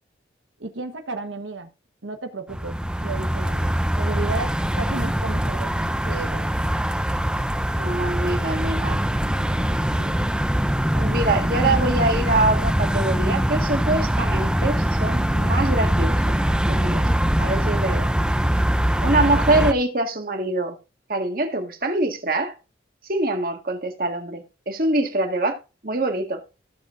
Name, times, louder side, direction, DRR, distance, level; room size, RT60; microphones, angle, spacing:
voice 1, 0.6-1.7 2.0-2.8 3.0-6.5 10.0-10.2 17.0-17.1, right 3 dB, 90° right, 1.3 m, -33 dB
sound 1, 2.5-19.7, equal, 5° right, 0.5 m, -22 dB
voice 2, 7.8-9.0 10.9-16.4 16.7-17.1 17.4-18.1 19.0-20.8 21.1-22.5 23.1-25.6 25.8-26.4, right 2 dB, 50° right, 1.8 m, -24 dB
15.0 x 7.6 x 2.6 m
head